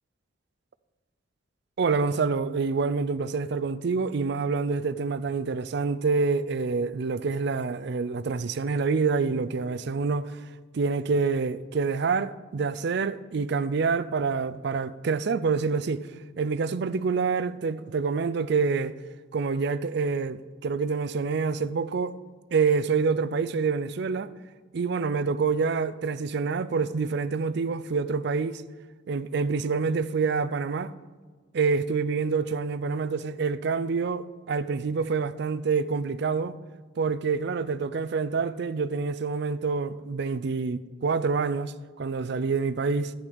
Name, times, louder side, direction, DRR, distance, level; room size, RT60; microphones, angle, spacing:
voice 1, 1.8-10.3 10.7-16.1 16.4-18.9 19.3-22.2 22.5-24.3 24.7-28.6 29.1-30.9 31.5-36.6 37.0-43.1, right 4 dB, 60° right, 0.4 m, -27 dB
11.5 x 8.7 x 5.1 m
head